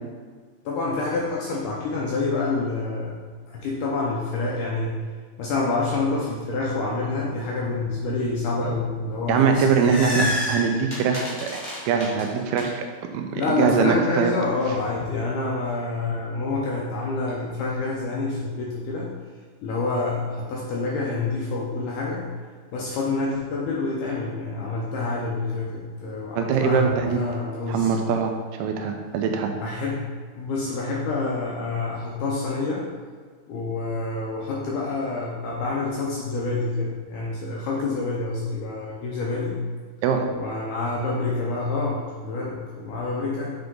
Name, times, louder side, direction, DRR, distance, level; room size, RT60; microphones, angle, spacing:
voice 1, 0.7-3.1 3.5-5.0 5.4-10.4 13.4-19.1 19.6-22.2 22.7-28.0 29.6-30.0 30.4-32.9 33.5-39.6 40.3-43.6, left 3 dB, 75° left, -4 dB, 1.9 m, -27 dB
sound 1, 9.3-12.6, left 1 dB, 50° left, 1.1 m, -30 dB
voice 2, 9.3-12.8 13.1-14.3 26.3-27.2 27.7-28.3 28.6-29.5 40.0-40.3, right 6 dB, 85° right, 4 dB, 2.5 m, -22 dB
7.7 x 3.5 x 3.8 m, 1.5 s
omnidirectional pair, 4.4 m